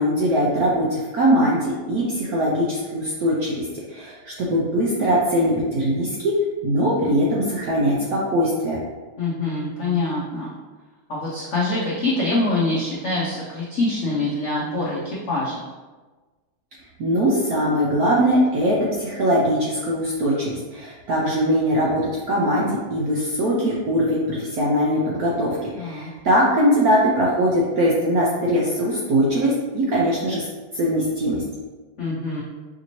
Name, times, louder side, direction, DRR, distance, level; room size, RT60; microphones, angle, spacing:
voice 1, 0.0-6.3 6.6-8.8 17.0-30.5 30.7-31.4, equal, 70° right, -4 dB, 0.9 m, -21 dB
voice 2, 9.2-10.5 11.1-15.6 25.8-26.1 32.0-32.4, left 2 dB, 75° left, -6 dB, 0.6 m, -25 dB
5.0 x 2.7 x 3.0 m, 1.3 s
omnidirectional pair, 2.2 m